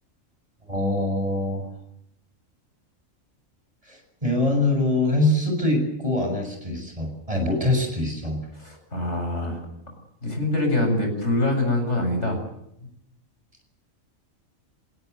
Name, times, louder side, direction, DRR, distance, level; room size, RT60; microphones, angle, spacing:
voice 1, 0.7-1.7 3.9-8.4, left 2 dB, 25° right, 4 dB, 7.0 m, -24 dB
voice 2, 8.5-9.6 10.2-12.4, left 1 dB, 60° left, 4 dB, 7.9 m, -25 dB
27.5 x 18.0 x 8.2 m, 0.77 s
omnidirectional pair, 1.4 m